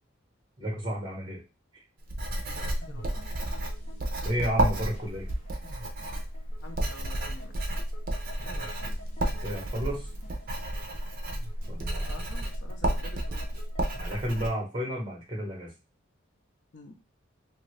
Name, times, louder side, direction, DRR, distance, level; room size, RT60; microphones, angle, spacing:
voice 1, 0.6-1.4 4.2-5.3 8.4-8.7 9.4-10.1 11.7-12.1 14.0-15.7, equal, 25° right, 1.2 m, -32 dB
Writing, 2.1-14.5, right 1 dB, 45° right, 0.6 m, -32 dB
voice 2, 2.4-3.2 6.6-7.8 8.5-9.0 12.1-13.5 16.7-17.0, left 2 dB, 65° left, 0.6 m, -48 dB
sound 1, 2.8-14.1, equal, 35° left, 1.0 m, -51 dB
2.8 x 2.6 x 3.2 m
head